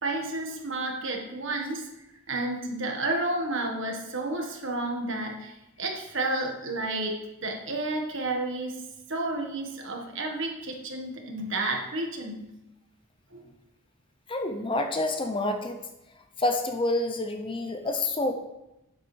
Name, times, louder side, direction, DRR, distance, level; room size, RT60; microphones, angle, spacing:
voice 1, 0.0-1.8 2.3-8.8 9.1-12.4 13.3-13.5, right 2 dB, 55° right, 1 dB, 1.6 m, -31 dB
voice 2, 14.3-15.8 16.4-18.3, left 2 dB, 25° left, 5 dB, 0.6 m, -28 dB
11.5 x 7.9 x 3.4 m, 0.91 s
head